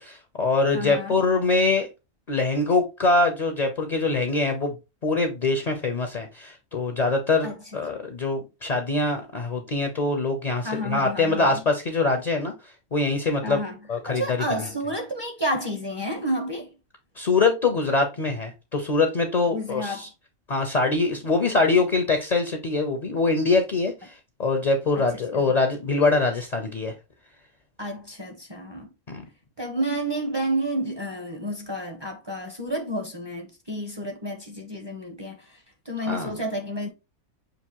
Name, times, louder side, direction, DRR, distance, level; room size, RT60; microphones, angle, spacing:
voice 1, 0.0-1.9 2.3-4.7 5.0-12.5 12.9-13.6 13.9-14.4 17.2-20.1 20.5-24.1 24.4-26.9 29.1-29.3 36.1-36.4, left 3 dB, 45° left, 0.5 m, -23 dB
voice 2, 0.7-1.2 7.4-7.5 10.6-11.6 13.4-13.8 14.1-16.7 19.5-20.0 25.0-25.1 25.3-25.5 27.8-28.9 29.6-35.6 35.9-36.9, right 1 dB, 25° right, 0.5 m, -30 dB
6.4 x 2.6 x 2.9 m
omnidirectional pair, 1.5 m